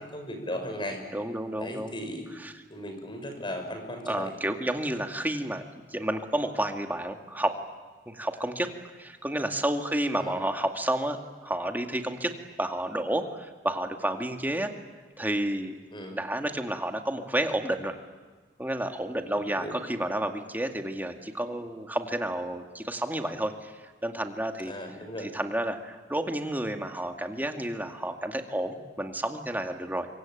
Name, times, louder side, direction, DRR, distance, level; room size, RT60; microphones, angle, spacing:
voice 1, 0.1-1.0 1.6-2.2 2.7-4.3 10.2-10.3 15.9-16.2 19.3-19.7 24.7-25.3, left 1 dB, 30° left, 5 dB, 5.9 m, -36 dB
voice 2, 1.1-1.9 2.3-2.6 4.0-5.6 5.9-7.6 8.1-14.7 15.2-15.8 16.1-18.0 18.6-24.7 25.2-30.1, right 1 dB, 10° right, 5 dB, 2.1 m, -31 dB
26.0 x 24.0 x 9.2 m, 1.4 s
head